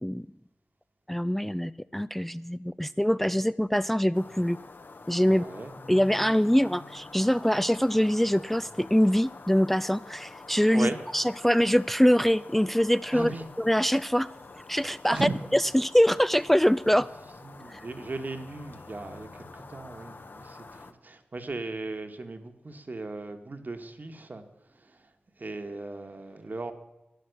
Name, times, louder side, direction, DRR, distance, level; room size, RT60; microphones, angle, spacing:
voice 1, 1.1-4.6 5.1-5.4 5.9-13.3 13.6-14.3 14.7-15.3 15.7-17.1 17.7-17.8, equal, 5° left, 15 dB, 0.3 m, -24 dB
sound 1, 4.1-20.9, left 3 dB, 60° left, 1.1 m, -47 dB
voice 2, 5.3-5.8 10.7-11.0 13.1-13.5 15.1-15.3 17.4-24.4 24.7-25.1 25.4-26.7, right 3 dB, 50° right, 7 dB, 1.5 m, -37 dB
12.0 x 10.0 x 6.7 m, 0.97 s
cardioid pair, 45°, 4 cm